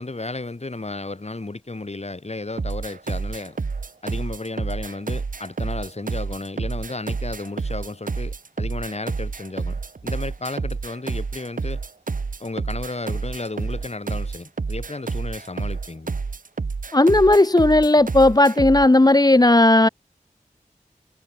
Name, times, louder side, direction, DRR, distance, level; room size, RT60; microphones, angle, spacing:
voice 1, 0.0-3.6 4.0-11.8 12.4-16.2, left 2 dB, 50° left, 5.5 m, -33 dB
sound 1, 2.6-18.9, right 4 dB, 75° right, 1.3 m, -29 dB
voice 2, 16.9-19.9, left 2 dB, 30° left, 1.0 m, -15 dB
wide cardioid pair, 45°, 14 cm